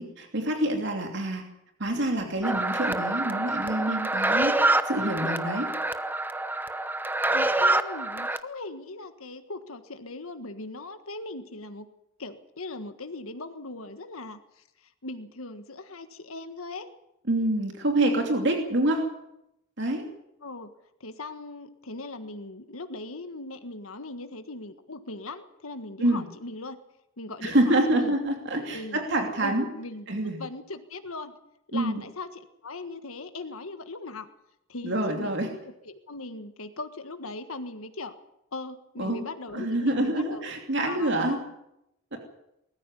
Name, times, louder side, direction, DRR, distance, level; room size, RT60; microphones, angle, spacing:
voice 1, 0.0-1.4 1.8-4.5 4.8-5.7 17.3-19.0 19.8-20.1 26.0-26.2 27.4-29.7 30.1-30.4 31.7-32.0 34.8-35.5 39.0-39.3 39.5-41.4 42.1-42.2, right 1 dB, 60° right, 3 dB, 2.8 m, -26 dB
sound 1, 2.4-8.4, right 2 dB, 10° right, 0.9 m, -26 dB
voice 2, 7.3-11.9 12.2-14.4 15.0-16.9 20.4-20.7 21.0-26.8 27.2-28.1 28.7-29.0 29.4-30.1 30.4-31.3 31.7-34.3 34.7-35.3 35.8-38.1 38.5-40.4 40.8-41.4, left 2 dB, 90° left, 8 dB, 1.6 m, -39 dB
20.5 x 14.0 x 9.8 m, 0.83 s
head